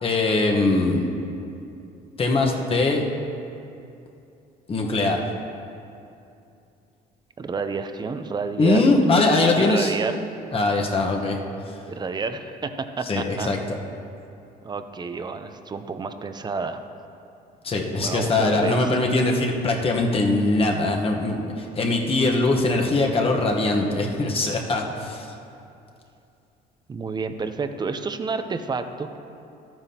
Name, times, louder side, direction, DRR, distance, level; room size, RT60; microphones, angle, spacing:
voice 1, 0.0-1.1 2.2-3.0 4.7-5.2 8.6-9.9 10.5-11.4 13.1-13.8 17.6-25.3, left 2 dB, 35° left, 1 dB, 1.1 m, -21 dB
voice 2, 7.4-8.9 9.6-10.2 11.9-13.5 14.6-16.8 18.0-19.0 26.9-29.2, right 4 dB, 25° right, 9 dB, 0.6 m, -30 dB
13.5 x 9.0 x 2.9 m, 2.7 s
cardioid pair, 110°, 17 cm